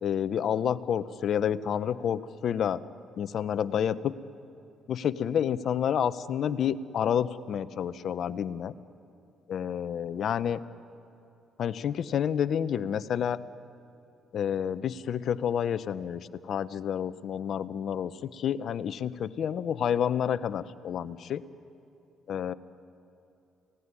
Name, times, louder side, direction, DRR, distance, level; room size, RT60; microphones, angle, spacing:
voice 1, 0.0-2.8 3.2-4.1 4.9-8.7 9.5-10.6 11.6-13.4 14.3-21.4 22.3-22.5, left 8 dB, 60° left, 14 dB, 0.9 m, -29 dB
29.5 x 18.0 x 9.9 m, 2.7 s
supercardioid pair, 70°, 0 cm